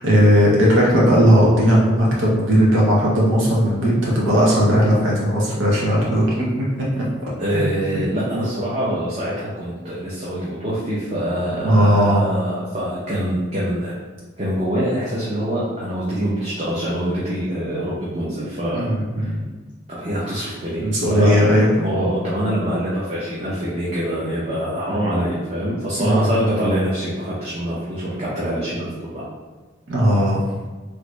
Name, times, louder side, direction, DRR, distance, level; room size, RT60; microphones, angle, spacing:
voice 1, 0.0-6.5 7.0-7.1 7.5-7.6 11.6-12.2 18.7-19.4 20.8-21.9 26.0-26.3 29.9-30.4, equal, 90° right, -5 dB, 0.7 m, -17 dB
voice 2, 7.4-13.9 14.4-18.9 19.2-19.3 19.9-21.3 21.8-29.3, equal, 35° right, -8 dB, 0.6 m, -24 dB
3.2 x 2.5 x 3.1 m, 1.3 s
head